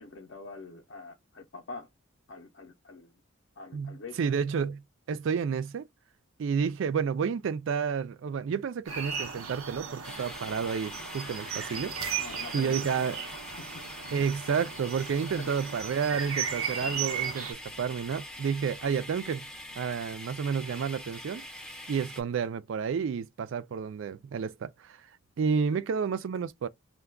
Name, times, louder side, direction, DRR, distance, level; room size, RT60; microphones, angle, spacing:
voice 1, 0.0-1.9 2.3-3.1 3.6-4.3 12.2-13.2 13.6-14.1 15.4-15.6 25.7-25.8, left 3 dB, 55° left, 0.5 m, -45 dB
voice 2, 3.7-4.8 5.1-5.9 6.4-12.2 12.5-13.2 14.1-19.4 19.8-21.4 21.9-25.0 25.4-26.7, right 6 dB, 60° right, 0.3 m, -30 dB
sound 1, 8.9-17.5, right 6 dB, 80° right, 0.7 m, -36 dB
sound 2, 10.0-22.2, left 1 dB, 5° left, 0.4 m, -44 dB
2.3 x 2.2 x 3.4 m
head